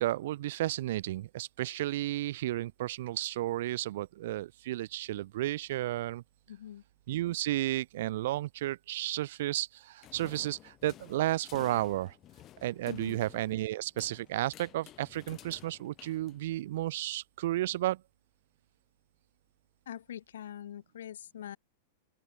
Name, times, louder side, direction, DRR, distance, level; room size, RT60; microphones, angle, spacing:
voice 1, 0.0-6.2 7.1-12.1 12.6-18.0, right 15 dB, 65° right, 0.3 m, -33 dB
voice 2, 6.5-6.8 12.9-13.2 19.9-21.6, left 10 dB, 85° left, 1.9 m, -43 dB
sound 1, 10.0-16.8, left 13 dB, 30° left, 2.0 m, -53 dB
open air
supercardioid pair, 150°, 0 cm